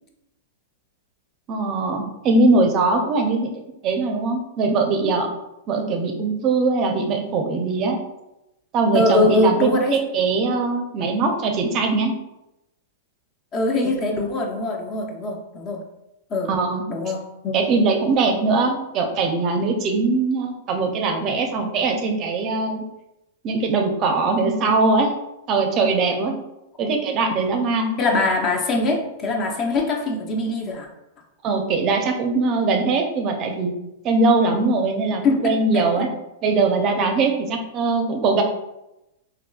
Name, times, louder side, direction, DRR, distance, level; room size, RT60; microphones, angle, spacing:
voice 1, 1.5-3.5 3.8-5.3 5.7-8.0 8.7-12.1 16.5-16.8 17.5-22.8 23.4-25.1 25.5-26.4 26.8-27.9 31.4-33.7 34.0-36.1 36.4-38.4, right 3 dB, 40° right, 3 dB, 0.5 m, -21 dB
voice 2, 8.9-10.0 13.5-15.8 16.3-16.5 16.9-17.6 26.8-26.9 28.0-30.9 35.2-36.1, left 2 dB, 35° left, 2 dB, 0.5 m, -22 dB
3.6 x 2.2 x 2.3 m, 0.91 s
hypercardioid pair, 110°, 0 cm